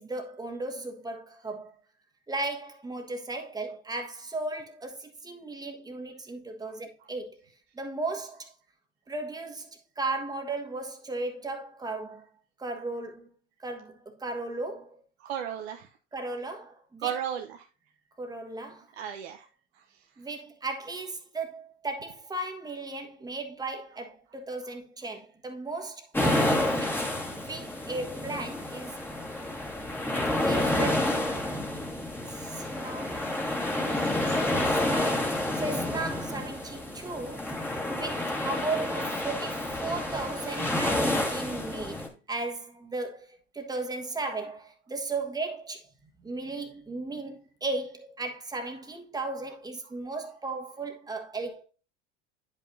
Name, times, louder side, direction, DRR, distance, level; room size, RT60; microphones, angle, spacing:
voice 1, 0.0-1.7 2.3-7.4 7.7-8.5 9.1-12.2 12.6-13.3 13.6-15.0 16.1-17.2 18.2-18.9 20.2-29.0 30.5-31.3 32.3-33.2 34.5-37.6 37.9-45.9 46.2-51.6, right 2 dB, 10° right, 1.4 m, -36 dB
voice 2, 15.2-15.9 17.0-17.7 18.9-19.5 31.6-31.7 34.0-34.6, right 9 dB, 60° right, 0.8 m, -35 dB
sound 1, 26.1-42.1, left 1 dB, 5° left, 1.7 m, -29 dB
10.0 x 5.4 x 2.6 m
figure-of-eight pair, 75°, 36 cm